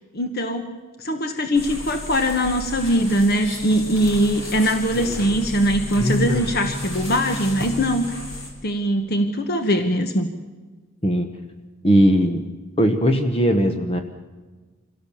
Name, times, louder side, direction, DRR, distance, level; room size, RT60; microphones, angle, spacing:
voice 1, 0.1-8.2 8.6-10.3, equal, 45° left, 6 dB, 1.3 m, -21 dB
sound 1, 1.6-8.5, left 1 dB, 65° left, 4.7 m, -30 dB
voice 2, 11.8-12.4 12.8-14.0, equal, 25° left, 6 dB, 1.1 m, -18 dB
25.5 x 16.5 x 7.1 m, 1.3 s
head